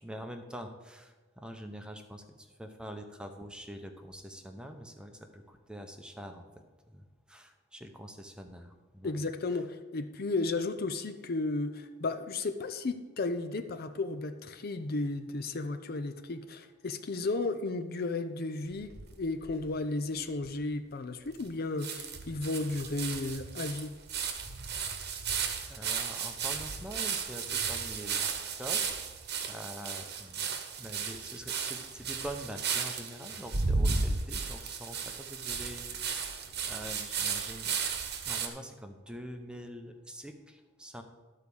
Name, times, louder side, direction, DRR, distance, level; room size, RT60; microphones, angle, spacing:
voice 1, 0.0-9.2 9.5-9.6 24.8-25.1 25.7-28.3 28.6-28.8 29.4-37.7 38.2-41.0, equal, 5° right, 5 dB, 0.7 m, -45 dB
voice 2, 9.0-18.9 19.2-23.9, left 3 dB, 45° left, 8 dB, 0.5 m, -34 dB
sound 1, 18.7-19.6 20.2-20.3 20.4-20.5 21.4-21.5 21.8-38.5, right 5 dB, 50° right, 1.1 m, -34 dB
12.0 x 4.7 x 7.0 m, 1.2 s
head